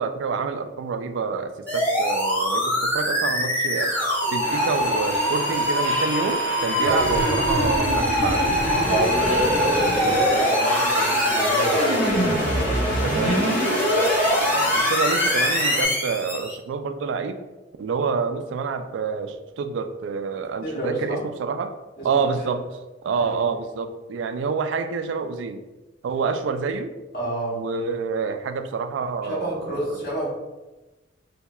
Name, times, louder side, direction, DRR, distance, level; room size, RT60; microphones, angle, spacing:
voice 1, 0.0-3.9 4.3-8.9 13.0-17.4 17.8-25.6 26.0-27.0 27.5-30.2, right 5 dB, 75° right, 9 dB, 0.3 m, -28 dB
sound 1, 1.7-16.5, equal, 10° left, 1.2 m, -22 dB
sound 2, 4.4-15.8, left 1 dB, 70° left, 1.4 m, -32 dB
voice 2, 8.8-13.0 20.6-21.2 22.0-22.5 23.1-23.4 27.1-27.6 29.2-30.3, right 1 dB, 50° left, -7 dB, 1.4 m, -29 dB
4.2 x 2.7 x 2.3 m, 1.1 s
head